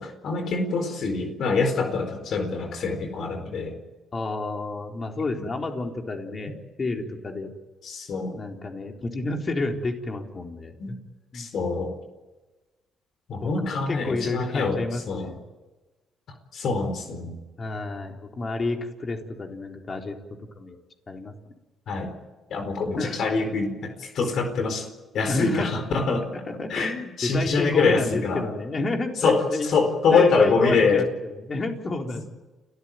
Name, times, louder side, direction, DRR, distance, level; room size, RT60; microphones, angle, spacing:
voice 1, 0.0-3.8 7.8-8.4 10.8-10.9 11.3-11.9 13.3-15.3 16.5-17.4 21.9-22.1 22.5-24.9 25.1-26.3 26.7-28.4 29.2-31.0, left 4 dB, 65° left, 6 dB, 4.5 m, -24 dB
voice 2, 4.1-7.5 8.4-11.0 11.3-11.5 13.4-15.4 17.6-20.2 20.6-20.8 21.1-21.3 23.0-23.3 25.3-25.9 26.5-29.7 30.1-32.2, left 3 dB, 40° left, 2 dB, 4.2 m, -30 dB
29.5 x 14.5 x 9.3 m, 1.2 s
supercardioid pair, 65°, 0 cm